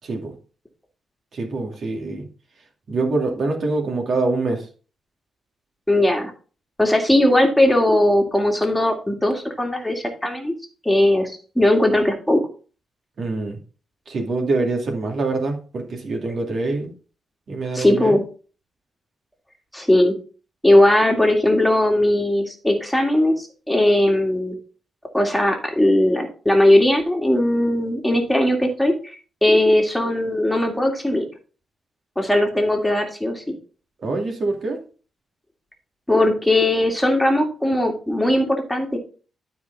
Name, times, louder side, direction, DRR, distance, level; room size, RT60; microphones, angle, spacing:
voice 1, 0.0-0.3 1.3-2.3 2.9-4.7 13.2-13.6 14.1-16.9 17.5-18.2 34.0-34.8, right 3 dB, 60° right, 2 dB, 2.5 m, -25 dB
voice 2, 5.9-6.3 6.8-10.5 10.8-12.4 17.7-18.2 19.7-20.2 20.6-24.6 25.1-31.3 32.2-33.5 36.1-39.0, left 1 dB, 5° left, 2 dB, 2.1 m, -18 dB
12.0 x 4.8 x 4.0 m, 0.38 s
cardioid pair, 85°, 0 cm